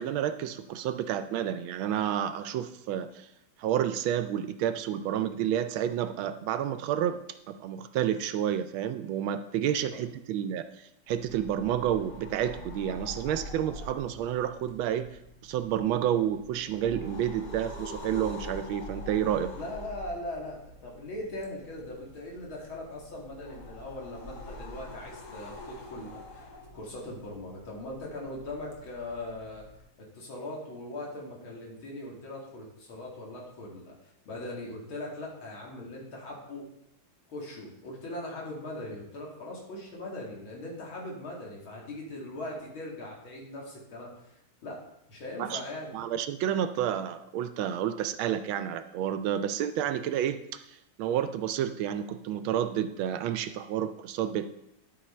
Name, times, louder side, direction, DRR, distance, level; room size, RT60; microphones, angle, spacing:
voice 1, 0.0-3.3 3.6-15.1 15.4-19.5 45.4-45.6 45.9-54.5, right 10 dB, 75° right, 10 dB, 1.3 m, -30 dB
sound 1, 11.1-29.8, left 1 dB, 50° left, 1.8 m, -45 dB
voice 2, 19.5-26.5 26.7-29.6 30.0-33.9 34.3-36.7 37.3-44.1 44.6-44.8 45.1-45.9, left 1 dB, 70° left, -2 dB, 2.9 m, -40 dB
11.5 x 5.2 x 4.3 m, 0.81 s
omnidirectional pair, 2.3 m